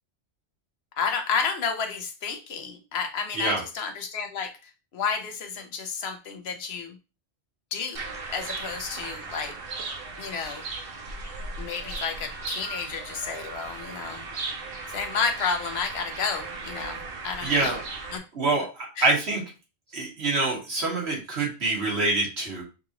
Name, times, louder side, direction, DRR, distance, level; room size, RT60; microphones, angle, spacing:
voice 1, 1.0-4.5 4.9-6.9 7.7-9.5 10.2-10.6 11.6-14.3 14.9-17.7 18.1-18.2 19.0-19.1, left 5 dB, 75° left, 5 dB, 1.0 m, -31 dB
sound 1, 8.0-18.2, right 3 dB, 65° right, 1.0 m, -37 dB
voice 2, 17.4-17.8 18.3-19.4 19.9-22.6, right 2 dB, 85° right, -2 dB, 1.7 m, -26 dB
5.7 x 2.5 x 2.9 m, 0.30 s
omnidirectional pair, 1.1 m